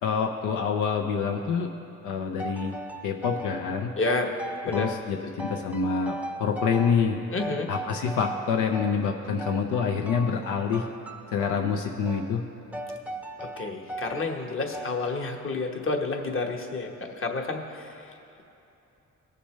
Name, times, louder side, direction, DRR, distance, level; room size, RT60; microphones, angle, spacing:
voice 1, 0.0-1.7 2.0-2.7 3.0-3.9 4.6-7.2 7.7-10.8 11.3-12.4, left 6 dB, 85° left, 3 dB, 0.7 m, -27 dB
sound 1, 2.4-3.6 4.1-5.1 5.4-7.1 7.4-9.0 9.4-10.4 10.7-11.7 12.1-12.3 12.7-14.3 14.7-15.1, right 1 dB, 5° right, 0.6 m, -37 dB
voice 2, 4.0-4.3 4.6-4.9 7.3-7.7 13.4-17.9, left 3 dB, 45° left, 2 dB, 1.3 m, -30 dB
19.5 x 6.8 x 3.2 m, 2.9 s
cardioid pair, 90°, 30 cm